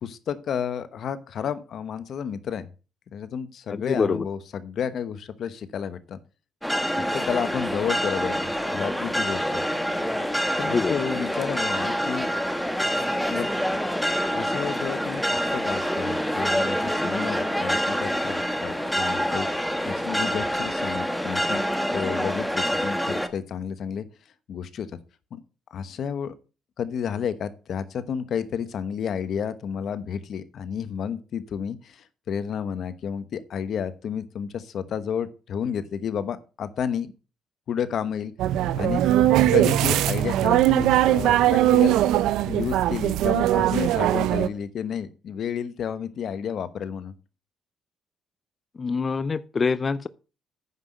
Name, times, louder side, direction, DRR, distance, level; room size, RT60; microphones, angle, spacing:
voice 1, 0.0-2.7 3.1-6.2 7.1-9.6 10.6-12.3 13.3-13.5 14.3-21.6 21.9-24.1 24.5-24.9 25.3-25.4 25.7-26.3 26.8-37.1 37.7-38.3 38.8-39.1 39.5-42.0 42.5-47.1, left 7 dB, 65° left, 1.1 m, -31 dB
voice 2, 3.7-4.2 10.7-11.0 48.8-50.1, left 4 dB, 35° left, 0.5 m, -25 dB
sound 1, 6.6-23.3, equal, 5° left, 1.3 m, -26 dB
sound 2, 38.4-44.5, right 13 dB, 90° right, 0.6 m, -20 dB
9.5 x 5.8 x 6.3 m
cardioid pair, 90°, 0 cm